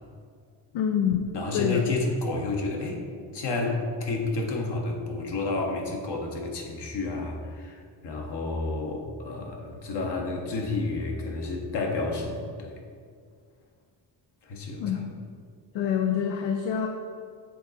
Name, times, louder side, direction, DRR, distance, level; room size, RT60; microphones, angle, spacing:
voice 1, 0.7-1.8 14.8-15.1 15.7-16.9, left 8 dB, 85° left, 3 dB, 0.6 m, -26 dB
voice 2, 1.3-12.7 14.4-15.0, left 3 dB, 60° left, 1 dB, 1.2 m, -30 dB
7.7 x 3.9 x 4.1 m, 2.1 s
cardioid pair, 100°, 46 cm